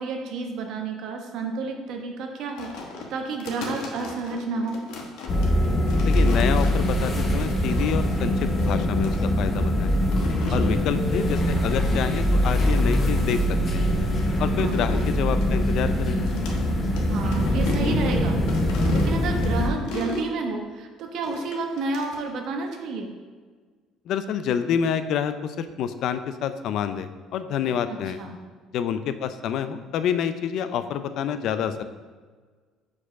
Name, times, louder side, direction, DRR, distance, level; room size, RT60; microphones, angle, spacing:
voice 1, 0.0-2.7 3.1-4.8 10.5-10.8 14.6-14.8 17.1-18.4 18.9-23.1 27.9-28.3, right 3 dB, 60° right, 3 dB, 1.0 m, -30 dB
sound 1, 2.6-8.1 8.6-9.2 9.9-10.7 11.3-11.6 11.8-11.9 12.4-13.4 13.9-16.6 16.9-17.0 17.3-20.3 21.2-22.3, left 3 dB, 80° left, 1.1 m, -38 dB
sound 2, 5.3-19.7, equal, 30° left, 0.8 m, -23 dB
voice 2, 6.0-9.9 10.5-13.9 14.4-16.2 24.1-28.2 28.7-31.8, left 8 dB, 60° left, 11 dB, 0.4 m, -28 dB
4.8 x 4.5 x 6.0 m, 1.5 s
cardioid pair, 150°, 0 cm